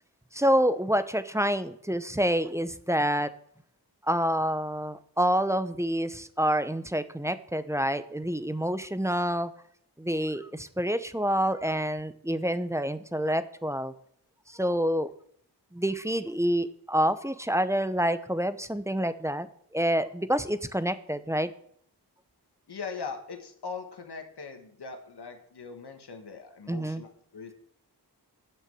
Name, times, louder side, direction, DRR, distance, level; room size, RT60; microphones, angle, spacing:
voice 1, 0.3-3.3 4.0-9.5 10.0-13.9 14.5-15.1 15.7-19.5 19.7-21.5 26.7-27.0, equal, 5° right, 12 dB, 0.7 m, -27 dB
voice 2, 22.7-27.5, left 5 dB, 75° left, 5 dB, 1.4 m, -40 dB
7.8 x 6.4 x 7.7 m, 0.65 s
wide cardioid pair, 55°, 40 cm